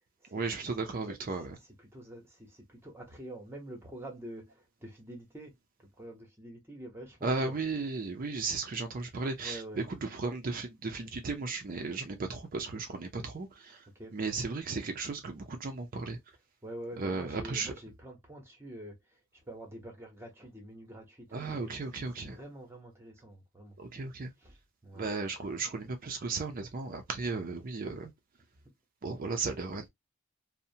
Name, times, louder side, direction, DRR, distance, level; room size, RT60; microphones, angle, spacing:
voice 1, 0.3-1.6 7.2-13.9 14.1-16.2 17.0-17.7 21.3-22.4 23.8-24.3 24.9-28.1 29.0-29.9, right 3 dB, 40° right, 0.4 m, -35 dB
voice 2, 1.8-5.5 5.8-7.5 9.4-9.8 13.9-14.2 16.6-19.2 19.5-23.8 24.4-24.6 24.8-25.1 26.2-26.4 28.6-28.7, right 1 dB, 10° right, 0.8 m, -46 dB
2.7 x 2.1 x 2.6 m
head